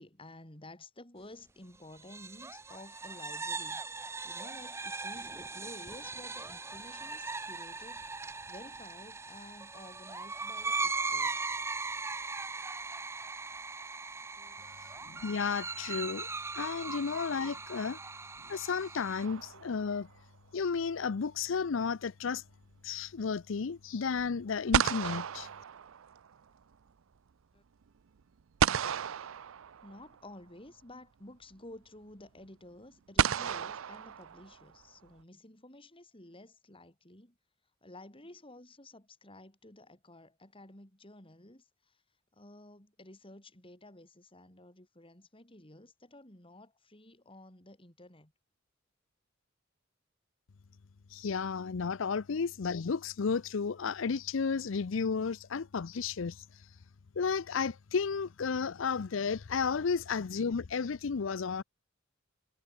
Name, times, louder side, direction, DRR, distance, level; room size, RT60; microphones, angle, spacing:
voice 1, 0.0-3.8 4.2-8.1 8.5-11.6 14.4-14.7 27.5-27.6 29.8-37.4 37.8-42.0 42.3-48.3, left 1 dB, 25° left, 5.5 m, -52 dB
sound 1, 2.0-19.3, right 3 dB, 15° right, 0.5 m, -39 dB
voice 2, 15.0-16.3 16.5-18.0 18.5-20.1 20.5-22.4 22.8-25.5 51.1-56.4 57.2-61.6, left 5 dB, 70° left, 0.5 m, -33 dB
sound 2, 19.2-20.1 24.2-24.3 24.7-26.4 28.6-30.2 31.5-31.6 33.2-34.8, right 8 dB, 85° right, 0.5 m, -32 dB
head